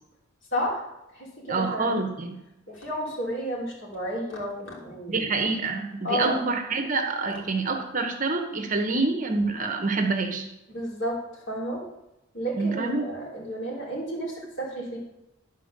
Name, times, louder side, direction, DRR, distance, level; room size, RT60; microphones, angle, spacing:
voice 1, 0.5-0.8 1.1-2.1 2.7-5.2 6.0-6.4 10.7-11.9 12.3-15.0, equal, 60° left, -3 dB, 3.0 m, -32 dB
voice 2, 1.5-2.4 5.1-10.5 12.5-13.0, right 3 dB, 40° right, 4 dB, 1.0 m, -27 dB
11.0 x 4.5 x 6.5 m, 0.88 s
head